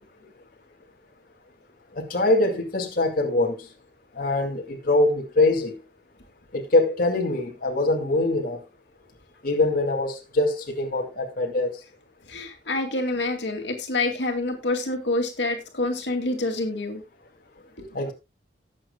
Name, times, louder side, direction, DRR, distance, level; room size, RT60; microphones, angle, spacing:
voice 1, 1.9-3.6 4.2-5.7 6.5-8.6 9.4-11.7 17.9-18.1, left 2 dB, 55° left, 2.3 m, -23 dB
voice 2, 12.3-17.0 17.8-17.9, left 2 dB, 80° left, 2.5 m, -27 dB
19.0 x 7.7 x 2.3 m
head